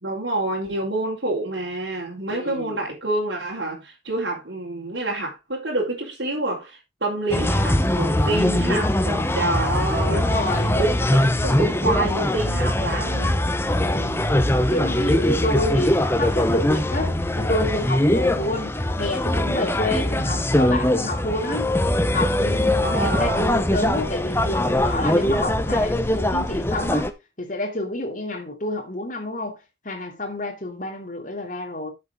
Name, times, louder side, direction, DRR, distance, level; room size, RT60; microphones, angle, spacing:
voice 1, 0.0-10.3 11.0-13.4 22.8-23.6, right 2 dB, 70° right, 3.8 m, -27 dB
voice 2, 2.3-2.7 10.1-10.8 13.8-14.2 14.7-21.7 22.1-27.1 27.4-29.5 29.8-31.9, left 1 dB, 45° left, 2.8 m, -28 dB
sound 1, 7.3-27.1, left 1 dB, 15° left, 0.8 m, -22 dB
11.5 x 7.4 x 3.6 m
head